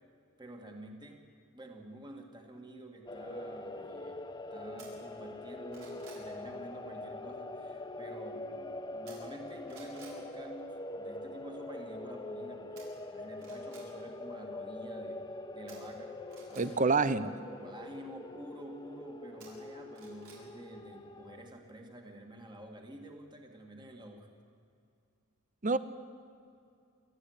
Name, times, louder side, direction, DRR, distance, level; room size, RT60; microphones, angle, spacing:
voice 1, 0.4-1.3 1.5-4.2 4.5-15.2 15.5-16.2 16.4-24.3, right 1 dB, 20° right, 2 dB, 2.3 m, -49 dB
sound 1, 3.1-21.5, left 2 dB, 20° left, 1.1 m, -44 dB
sound 2, 4.8-4.9 5.4-6.3 9.1-9.4 9.7-10.2 12.8-12.9 13.3-13.9 15.7-16.7 19.4-20.4 20.8-20.9, right 6 dB, 80° right, 7.5 m, -54 dB
voice 2, 16.6-17.3 25.6-25.8, right 4 dB, 35° right, 14 dB, 0.9 m, -27 dB
28.5 x 14.0 x 9.8 m, 2.4 s
head